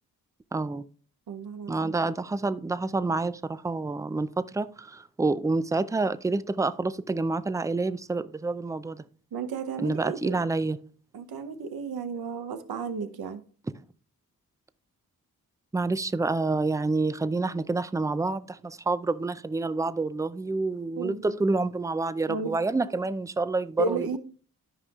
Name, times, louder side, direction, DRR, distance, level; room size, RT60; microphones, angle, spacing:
voice 1, 0.5-0.8 1.7-9.0 9.8-10.8 15.7-24.2, right 3 dB, 10° right, 0.3 m, -28 dB
voice 2, 1.3-2.1 9.3-10.4 11.1-13.4 21.0-21.4 22.3-22.6 23.8-24.2, right 4 dB, 85° right, 0.9 m, -33 dB
13.0 x 5.4 x 2.4 m
cardioid pair, 75°, 36 cm